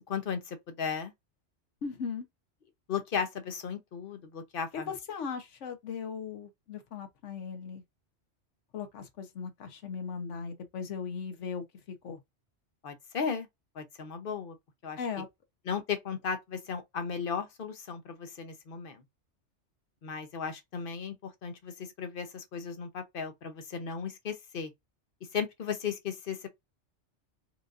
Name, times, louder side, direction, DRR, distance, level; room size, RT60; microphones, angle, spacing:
voice 1, 0.1-1.1 2.9-4.9 12.8-13.5 13.8-14.6 14.8-15.0 15.7-19.0 20.0-24.7 25.3-26.5, left 6 dB, 55° left, 0.9 m, -35 dB
voice 2, 1.8-2.3 4.7-7.8 8.7-12.2 15.0-15.3, left 6 dB, 85° left, 1.2 m, -38 dB
4.6 x 2.5 x 2.5 m
omnidirectional pair, 1.2 m